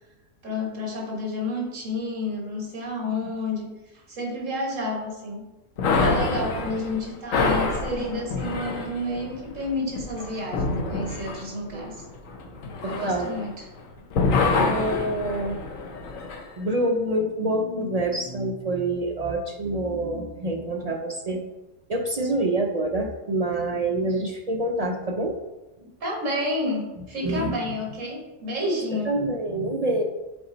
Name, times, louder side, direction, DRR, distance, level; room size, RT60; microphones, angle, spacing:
voice 1, 0.4-3.7 3.9-5.4 6.0-12.0 12.8-13.7 26.0-29.1, left 1 dB, 65° right, 0 dB, 1.9 m, -30 dB
sound 1, 5.8-13.8 14.1-16.4, left 3 dB, 75° left, 1.2 m, -27 dB
voice 2, 12.8-13.3 14.6-15.6 16.6-21.4 21.9-25.4 27.2-27.5 29.1-30.0, right 1 dB, 50° right, 2 dB, 0.4 m, -26 dB
7.0 x 4.1 x 3.9 m, 1.0 s
omnidirectional pair, 1.4 m